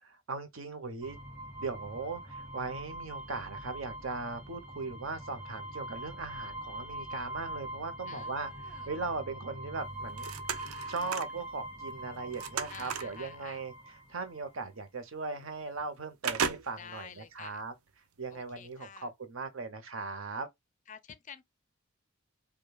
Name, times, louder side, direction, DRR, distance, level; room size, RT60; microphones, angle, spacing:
voice 1, 0.3-1.2 1.6-10.3 10.9-17.7 18.2-20.5, right 4 dB, 65° right, 0.9 m, -39 dB
sound 1, 1.0-14.4, right 1 dB, 5° right, 0.8 m, -43 dB
voice 2, 8.1-8.9 12.7-13.6 16.8-17.6 18.3-19.1 20.9-21.4, left 7 dB, 35° left, 0.4 m, -49 dB
sound 2, 9.9-11.4 11.9-13.2 14.3-14.5 14.9-15.0 15.4-15.9 16.2-17.0 17.5-17.6, right 6 dB, 85° right, 0.5 m, -36 dB
5.1 x 2.3 x 2.3 m
head